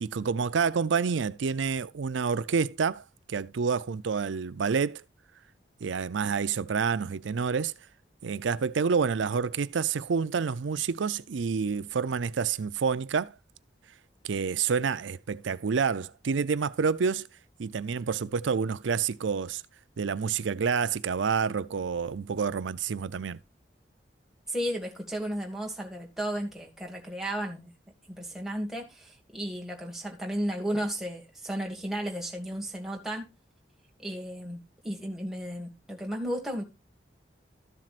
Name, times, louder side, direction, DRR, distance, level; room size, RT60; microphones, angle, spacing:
voice 1, 0.0-5.0 5.8-7.7 8.2-13.3 14.2-17.3 17.6-19.6 20.0-23.4, right 5 dB, 90° right, 0.5 m, -28 dB
voice 2, 24.5-27.7 28.1-33.3 34.0-36.6, equal, ahead, 1.8 m, -34 dB
13.5 x 7.5 x 2.5 m
head